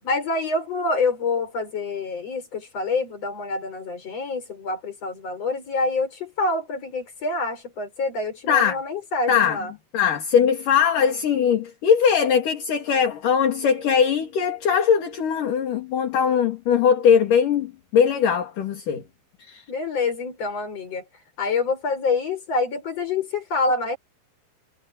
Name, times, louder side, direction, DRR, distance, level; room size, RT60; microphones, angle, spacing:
voice 1, 0.0-9.7 19.7-21.0 21.4-24.0, left 3 dB, 35° left, 6.5 m, -26 dB
voice 2, 8.5-8.8 9.3-9.6 9.9-19.0 19.4-19.6, left 7 dB, 55° left, 4.1 m, -20 dB
omnidirectional pair, 4.8 m